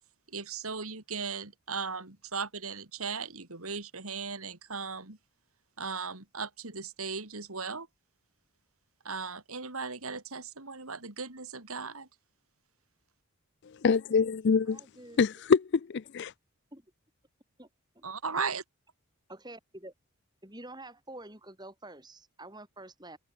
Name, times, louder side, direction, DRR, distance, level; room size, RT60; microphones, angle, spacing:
voice 1, 0.3-5.2 5.8-7.9 9.0-12.1 18.0-18.6, right 5 dB, 80° right, 3.7 m, -37 dB
voice 2, 13.6-14.8 15.2-16.3, left 5 dB, 50° left, 0.4 m, -25 dB
voice 3, 14.7-15.3 16.7-16.9 17.6-17.7 17.9-18.0 19.3-19.9 20.4-23.2, right 1 dB, 20° right, 6.9 m, -47 dB
head